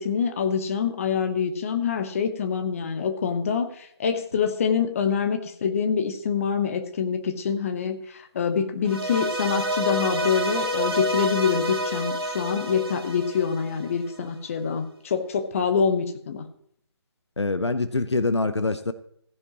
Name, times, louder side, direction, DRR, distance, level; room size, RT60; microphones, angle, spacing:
voice 1, 0.0-16.5, left 6 dB, 30° left, 8 dB, 1.0 m, -25 dB
sound 1, 8.8-14.1, right 1 dB, 60° right, 2.3 m, -29 dB
voice 2, 17.4-18.9, left 3 dB, 85° left, 12 dB, 0.7 m, -24 dB
15.5 x 10.0 x 3.0 m, 0.67 s
figure-of-eight pair, 150°, 14 cm